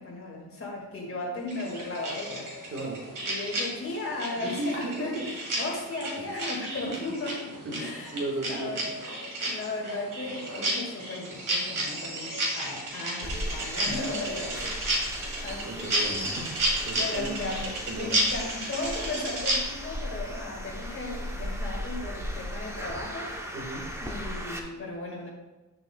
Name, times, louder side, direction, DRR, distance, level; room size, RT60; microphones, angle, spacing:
voice 1, 0.0-2.5 3.2-7.4 7.8-8.2 8.5-9.0 9.4-15.0 15.4-16.3 16.9-23.3 24.0-25.3, left 2 dB, 40° left, -2 dB, 1.9 m, -36 dB
sound 1, 1.5-19.6, right 1 dB, 60° right, 2.4 m, -32 dB
voice 2, 2.7-3.1 4.4-5.2 7.0-7.1 7.6-8.8 15.6-16.4 16.9-17.3 17.9-18.1 23.5-23.9, right 2 dB, 40° right, 0 dB, 1.6 m, -35 dB
sound 2, 13.2-24.6, equal, 10° right, 0.8 m, -37 dB
9.7 x 6.9 x 2.3 m, 1.2 s
wide cardioid pair, 160°, 35 cm